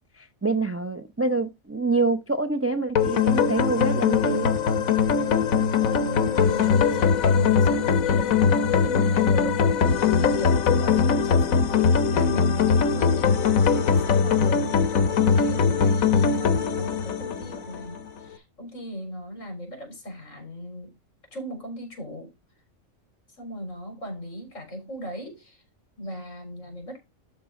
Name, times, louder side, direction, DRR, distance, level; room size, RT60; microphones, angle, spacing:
voice 1, 0.2-4.5, right 3 dB, 20° right, 0.4 m, -26 dB
sound 1, 2.9-18.0, left 6 dB, 85° left, 1.4 m, -21 dB
voice 2, 5.8-13.3 13.9-20.9 21.3-22.3 23.4-25.6 26.0-27.0, equal, 65° left, 4.2 m, -38 dB
12.0 x 4.1 x 3.7 m
omnidirectional pair, 1.4 m